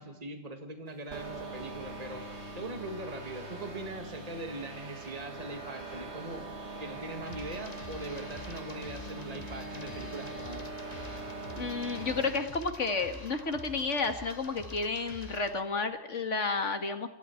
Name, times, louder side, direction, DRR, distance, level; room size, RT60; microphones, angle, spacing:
voice 1, 0.0-2.2 2.5-6.4 6.8-10.7, right 2 dB, 30° right, 5 dB, 2.1 m, -41 dB
sound 1, 1.1-12.5, right 2 dB, 60° right, 2.6 m, -42 dB
sound 2, 7.3-15.6, left 3 dB, 30° left, 1.9 m, -47 dB
voice 2, 11.5-17.1, left 4 dB, 70° left, 7 dB, 2.5 m, -31 dB
28.5 x 26.5 x 4.7 m, 0.87 s
omnidirectional pair, 1.3 m